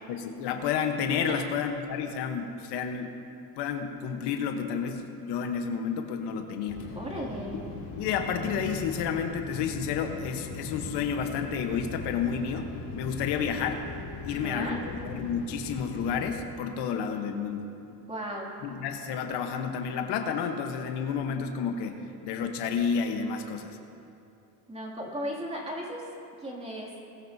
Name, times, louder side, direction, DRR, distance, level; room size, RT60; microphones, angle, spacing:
voice 1, 0.1-3.1 3.6-6.9 7.5-7.6 8.0-13.8 14.2-17.7 18.6-23.8, left 6 dB, 75° left, 5 dB, 1.2 m, -31 dB
sound 1, 6.7-16.4, left 3 dB, 55° left, 2.4 m, -40 dB
voice 2, 6.9-7.6 14.3-14.8 18.1-18.5 24.7-26.1 26.4-26.9, equal, 15° right, -3 dB, 2.5 m, -36 dB
20.5 x 13.5 x 2.8 m, 2.8 s
cardioid pair, 135°, 41 cm